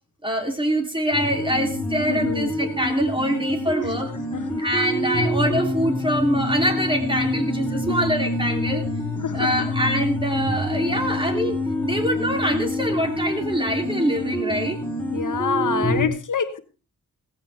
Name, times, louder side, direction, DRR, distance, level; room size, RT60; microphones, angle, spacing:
voice 1, 0.2-4.1 4.6-8.8 9.3-11.6 11.8-14.8, equal, 15° right, 4 dB, 3.0 m, -24 dB
sound 1, 1.1-16.1, left 1 dB, 5° left, 3.9 m, -26 dB
voice 2, 2.1-2.5 4.3-4.6 5.2-5.3 9.2-9.5 15.1-16.6, left 6 dB, 60° left, 9 dB, 1.3 m, -26 dB
17.5 x 15.0 x 3.4 m, 0.32 s
wide cardioid pair, 145°, 34 cm